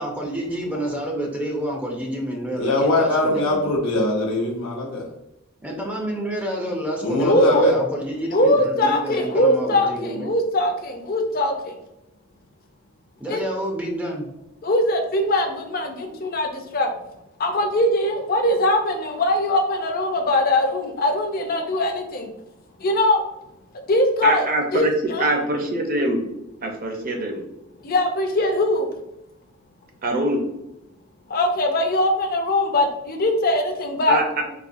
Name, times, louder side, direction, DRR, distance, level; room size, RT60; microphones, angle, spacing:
voice 1, 0.0-3.6 5.6-10.3 13.2-14.3, equal, 5° right, -1 dB, 0.5 m, -28 dB
voice 2, 2.6-5.0 7.0-7.7, left 2 dB, 80° left, -2 dB, 0.7 m, -21 dB
voice 3, 7.3-7.8 8.3-11.7 13.3-13.4 14.6-16.9 17.4-22.3 22.8-23.2 23.9-24.5 24.7-25.3 27.8-28.9 31.3-34.2, left 1 dB, 45° left, 3 dB, 0.6 m, -21 dB
voice 4, 24.2-26.2 26.6-27.4 30.0-30.4 34.1-34.3, right 1 dB, 40° right, 2 dB, 0.7 m, -23 dB
4.1 x 2.6 x 2.6 m, 0.89 s
head